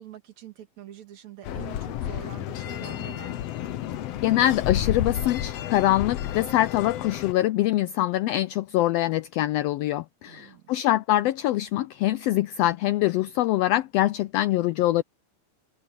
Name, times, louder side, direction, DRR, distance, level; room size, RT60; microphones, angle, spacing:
voice 1, 0.0-3.5 10.3-10.8, right 11 dB, 70° right, 4.0 m, -45 dB
sound 1, 1.4-7.3, left 11 dB, 65° left, 1.8 m, -31 dB
voice 2, 4.2-15.0, left 14 dB, 85° left, 1.4 m, -24 dB
omnidirectional pair, 3.3 m